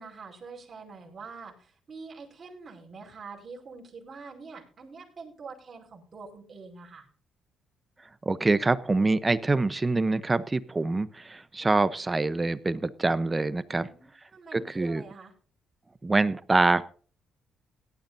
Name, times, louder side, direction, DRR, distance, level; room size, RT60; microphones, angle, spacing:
voice 1, 0.0-7.1 13.7-15.3, right 4 dB, 40° right, -1 dB, 5.1 m, -45 dB
voice 2, 8.3-13.9 14.5-15.0 16.0-16.8, right 3 dB, 20° right, 15 dB, 0.8 m, -25 dB
18.0 x 12.0 x 2.7 m, 0.41 s
cardioid pair, 90°, 0 cm